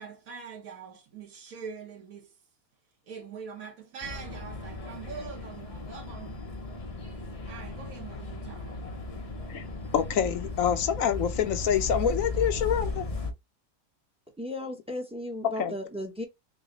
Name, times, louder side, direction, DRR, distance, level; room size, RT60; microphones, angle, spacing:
voice 1, 0.0-2.3 3.1-6.4 7.5-8.8, right 6 dB, 70° right, 1.6 m, -43 dB
sound 1, 4.0-13.3, left 2 dB, 40° left, 0.5 m, -36 dB
voice 2, 9.9-13.0 15.6-15.7, left 8 dB, 70° left, 1.0 m, -26 dB
voice 3, 14.4-16.2, left 1 dB, 5° right, 0.6 m, -35 dB
3.9 x 2.2 x 3.9 m
omnidirectional pair, 1.5 m